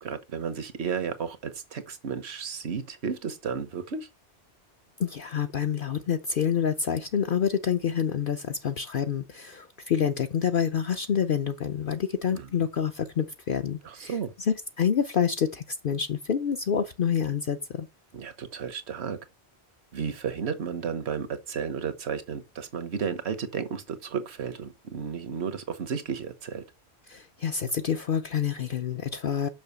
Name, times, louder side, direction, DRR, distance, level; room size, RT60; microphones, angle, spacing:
voice 1, 0.0-4.1 12.3-12.5 13.8-14.3 18.1-19.2 19.9-26.6, right 6 dB, 75° right, 1.3 m, -33 dB
voice 2, 5.0-14.2 14.5-17.9 27.1-29.5, left 7 dB, 55° left, 0.8 m, -27 dB
6.2 x 5.8 x 6.9 m
omnidirectional pair, 1.1 m